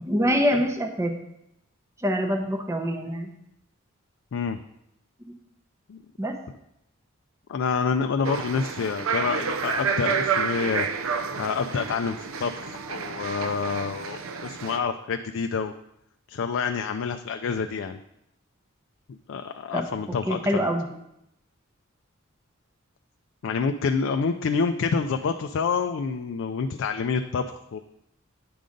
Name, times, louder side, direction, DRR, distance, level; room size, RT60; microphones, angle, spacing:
voice 1, 0.1-1.2 2.0-3.3 6.2-6.4 19.7-19.8 20.3-20.8, equal, 15° right, 3 dB, 0.6 m, -25 dB
voice 2, 7.5-10.9 11.4-15.7 16.3-18.0 19.1-20.7 23.4-27.8, left 5 dB, 65° left, 6 dB, 0.4 m, -27 dB
sound 1, 8.2-14.8, right 6 dB, 80° right, 0.5 m, -29 dB
9.4 x 3.8 x 5.1 m, 0.80 s
head